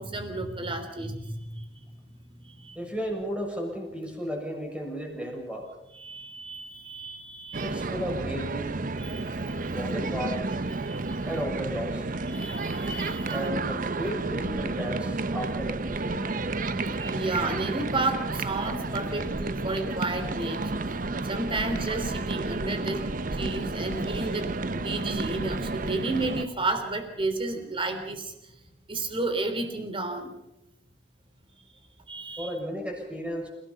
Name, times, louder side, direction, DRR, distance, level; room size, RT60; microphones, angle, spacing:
voice 1, 0.0-2.0 2.3-2.8 5.9-7.8 9.0-9.7 10.8-11.3 12.3-13.4 16.9-20.8 21.3-23.1 23.3-28.5 28.9-30.3 32.1-32.5, right 2 dB, 30° right, 6 dB, 3.5 m, -32 dB
voice 2, 2.7-5.7 7.6-8.9 9.7-10.4 11.2-12.0 13.3-16.3 32.4-33.5, equal, 5° right, 0 dB, 6.7 m, -34 dB
sound 1, 7.5-26.5, right 3 dB, 50° right, 0.9 m, -31 dB
29.0 x 18.0 x 5.7 m, 0.88 s
head